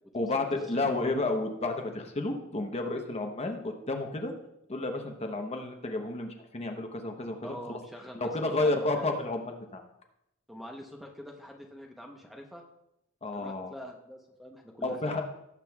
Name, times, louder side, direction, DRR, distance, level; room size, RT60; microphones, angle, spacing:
voice 1, 0.1-4.3 4.7-7.8 8.2-9.8 13.2-13.7 14.8-15.2, left 2 dB, 30° left, 4 dB, 0.9 m, -31 dB
voice 2, 7.4-8.3 8.6-9.1 10.5-12.6 13.3-15.2, equal, ahead, 1 dB, 0.8 m, -45 dB
18.0 x 7.5 x 2.3 m, 0.84 s
head